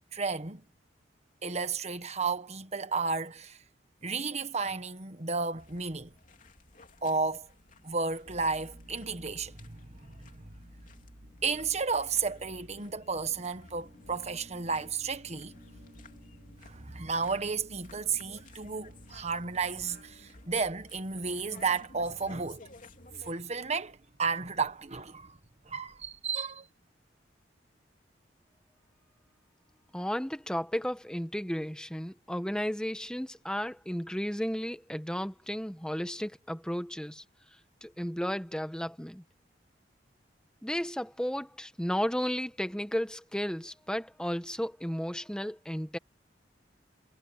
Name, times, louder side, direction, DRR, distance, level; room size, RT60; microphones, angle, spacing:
voice 1, 0.1-0.6 1.4-3.6 4.0-6.1 7.0-7.5 7.8-9.6 10.0-10.1 11.4-15.6 16.6-22.6 23.2-25.4 25.7-26.7, right 4 dB, 40° right, 1.4 m, -32 dB
sound 1, 5.6-23.3, left 2 dB, 45° left, 3.2 m, -55 dB
sound 2, 8.3-25.7, equal, 55° right, 4.9 m, -56 dB
voice 2, 29.9-37.2 37.8-39.2 40.6-46.0, equal, 5° left, 1.4 m, -33 dB
head